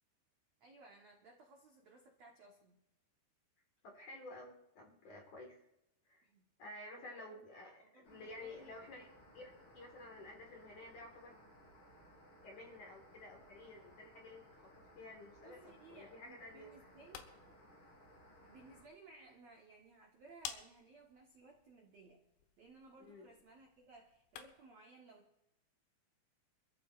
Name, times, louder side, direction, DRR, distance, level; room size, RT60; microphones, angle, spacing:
voice 1, 0.6-2.8 6.2-6.4 7.0-9.1 15.4-17.5 18.4-22.2 22.6-25.4, right 3 dB, 85° right, -1 dB, 1.5 m, -60 dB
voice 2, 3.8-5.6 6.1-6.3 6.6-9.1 9.3-11.4 11.8-11.9 12.4-16.9 23.0-23.3, left 2 dB, 55° left, 0 dB, 2.5 m, -52 dB
sound 1, 8.0-18.8, equal, 30° left, 4.0 m, -62 dB
sound 2, 16.8-24.8, left 9 dB, 75° left, 3.1 m, -55 dB
26.5 x 14.5 x 2.5 m, 0.88 s
omnidirectional pair, 5.4 m